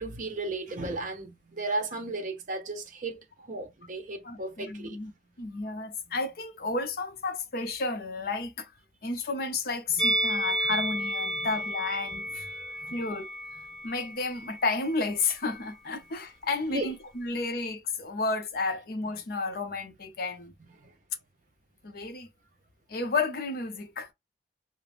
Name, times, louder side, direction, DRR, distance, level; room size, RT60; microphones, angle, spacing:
voice 1, 0.0-5.0 11.3-11.5 12.1-12.2 12.5-13.0 16.7-16.9 20.8-20.9, right 2 dB, 45° right, 0.6 m, -35 dB
voice 2, 4.2-5.1 5.4-8.7 9.0-12.5 12.9-13.3 13.8-20.5 21.8-22.3 22.9-24.1, left 3 dB, 55° left, 0.5 m, -32 dB
Musical instrument, 10.0-15.2 15.5-15.7, right 1 dB, 5° left, 0.5 m, -32 dB
2.4 x 2.0 x 3.3 m
head